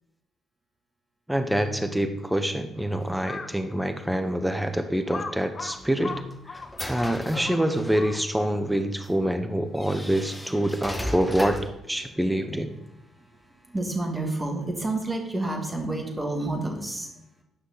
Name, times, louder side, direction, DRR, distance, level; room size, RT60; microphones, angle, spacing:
voice 1, 1.3-6.1 6.5-6.6 6.9-11.6 11.8-12.7, right 1 dB, 5° right, 7 dB, 0.9 m, -26 dB
Crow, 3.2-3.6 4.2-4.3 5.1-8.5, left 4 dB, 40° left, 0.7 m, -38 dB
sound 1, 5.7-8.2 9.0-9.1 9.8-11.8, left 1 dB, 10° left, 1.5 m, -36 dB
voice 2, 13.2-17.1, right 2 dB, 20° right, 2 dB, 2.3 m, -30 dB
9.8 x 5.7 x 4.0 m, 0.91 s
hypercardioid pair, 45°, 0 cm